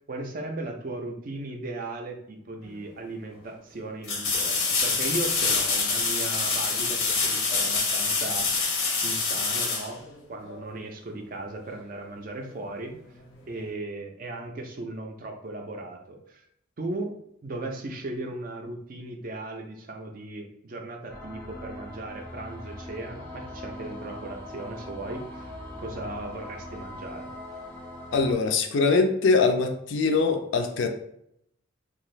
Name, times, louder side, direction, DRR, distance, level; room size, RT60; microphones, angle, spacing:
voice 1, 0.1-8.5 8.9-10.0 10.3-13.0 13.5-16.4 16.8-17.1 17.4-25.5 25.8-27.3, right 2 dB, 40° right, 3 dB, 0.4 m, -37 dB
sound 1, 2.7-2.8 4.0-10.6 13.5-13.6, left 4 dB, 85° left, 0.8 m, -26 dB
sound 2, 21.1-28.3, left 1 dB, 10° left, 0.5 m, -41 dB
voice 2, 28.1-30.9, left 4 dB, 60° left, 5 dB, 0.4 m, -22 dB
2.6 x 2.4 x 3.1 m, 0.73 s
head